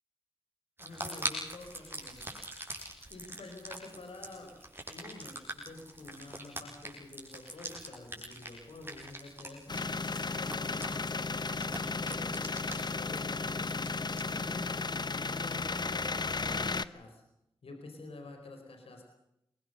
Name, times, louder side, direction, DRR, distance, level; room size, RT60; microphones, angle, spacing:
voice 1, 0.8-2.4 2.7-2.8 3.1-4.6 4.9-12.5 12.9-17.2 17.6-19.0, left 2 dB, 80° left, 4 dB, 4.5 m, -48 dB
sound 1, 0.8-14.2, right 1 dB, 25° right, 6.9 m, -43 dB
sound 2, 9.7-16.8, left 4 dB, 45° left, 0.9 m, -34 dB
23.0 x 20.0 x 6.8 m, 0.83 s
cardioid pair, 40°, 10 cm